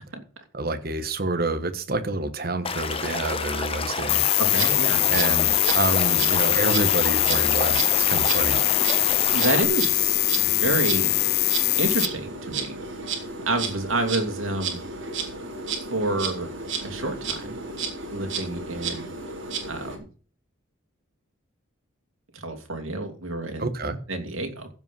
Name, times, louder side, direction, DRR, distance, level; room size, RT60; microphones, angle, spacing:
voice 1, 0.5-4.3 5.1-8.6 23.6-24.0, right 2 dB, 45° right, 1.3 m, -28 dB
Stream / Liquid, 2.6-9.6, left 4 dB, 25° left, 1.1 m, -30 dB
sound 1, 4.1-12.1, left 16 dB, 50° left, 0.5 m, -22 dB
Insect, 4.4-20.0, right 4 dB, 65° right, 3.2 m, -33 dB
voice 2, 4.5-5.1 9.3-11.2 11.8-12.8 13.1-14.8 15.9-16.5 16.8-17.6 18.1-19.1 19.6-20.1 22.3-23.7 24.1-24.7, right 2 dB, 85° right, 2.7 m, -29 dB
15.0 x 5.5 x 5.5 m
head